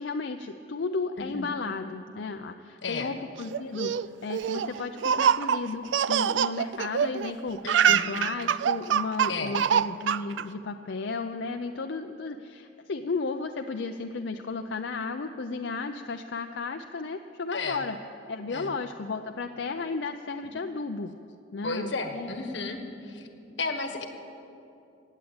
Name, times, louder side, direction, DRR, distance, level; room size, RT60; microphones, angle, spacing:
voice 1, 0.0-3.9 4.2-7.6 7.9-18.0 18.3-21.1 21.5-22.3, left 4 dB, 70° left, 6 dB, 0.5 m, -34 dB
voice 2, 1.2-1.5 2.8-3.1 7.6-8.1 9.3-9.5 17.5-17.8 18.5-18.7 21.6-23.3 23.6-24.0, left 3 dB, 90° left, 6 dB, 1.4 m, -33 dB
Laughter, 3.5-7.3 7.6-10.4, right 8 dB, 80° right, 0.4 m, -25 dB
17.0 x 8.4 x 8.7 m, 2.8 s
head